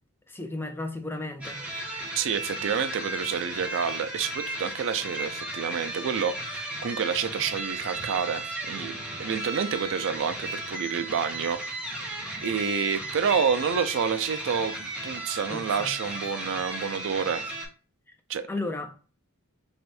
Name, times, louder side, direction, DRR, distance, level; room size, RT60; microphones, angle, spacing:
voice 1, 0.3-1.6 15.5-15.9 18.5-18.9, left 2 dB, 10° left, 0.4 m, -34 dB
sound 1, 1.4-17.7, right 1 dB, 5° right, 1.0 m, -35 dB
voice 2, 2.2-11.6 12.4-17.5 18.3-18.5, right 6 dB, 60° right, 0.4 m, -29 dB
3.4 x 2.6 x 4.1 m
head